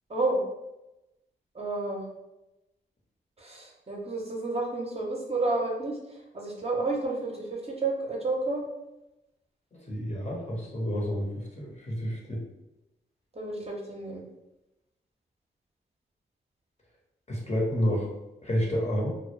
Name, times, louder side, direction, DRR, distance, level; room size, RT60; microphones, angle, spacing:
voice 1, 0.1-0.4 1.5-2.0 3.4-6.0 6.3-8.6 13.3-14.2, right 2 dB, 30° right, -2 dB, 0.7 m, -30 dB
voice 2, 9.7-12.4 17.3-18.1 18.4-19.1, equal, 35° left, -3 dB, 0.9 m, -29 dB
2.1 x 2.0 x 3.1 m, 0.95 s
supercardioid pair, 45°, 21 cm